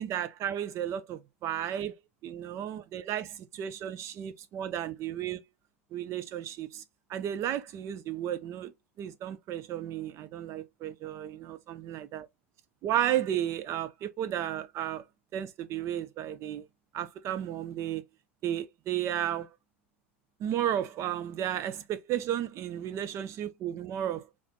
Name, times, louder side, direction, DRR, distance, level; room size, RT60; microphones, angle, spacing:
voice 1, 0.0-5.4 5.9-6.8 7.1-8.7 9.0-12.3 12.8-15.0 15.3-16.7 16.9-18.0 18.4-19.5 20.4-24.3, right 11 dB, 40° right, 0.7 m, -33 dB
3.5 x 3.4 x 3.7 m
figure-of-eight pair, 80°, 7 cm